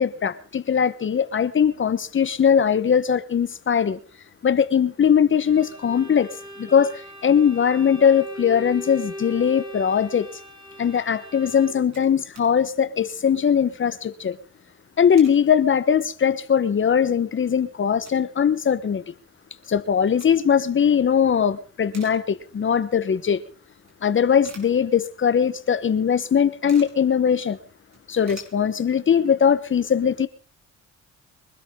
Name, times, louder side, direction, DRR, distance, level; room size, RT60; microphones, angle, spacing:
voice 1, 0.0-4.0 4.4-6.3 6.6-10.3 10.8-14.4 15.0-19.0 19.7-23.4 24.0-27.6 28.1-30.3, left 7 dB, 40° left, 1.1 m, -20 dB
Bowed string instrument, 5.4-12.0, equal, 15° right, 3.5 m, -39 dB
sound 1, 11.9-12.5 12.9-13.0 13.2-13.5 14.7-15.4 16.0-16.1 16.6-16.7 17.0-18.4 18.7-18.8 19.8-20.7 21.1-21.4 21.7-22.7 23.1-23.2 23.9-25.4 25.7-25.8 26.0-27.0 27.4-27.5 27.7-29.2, right 4 dB, 60° right, 5.9 m, -50 dB
23.5 x 12.5 x 3.7 m
cardioid pair, 90°, 30 cm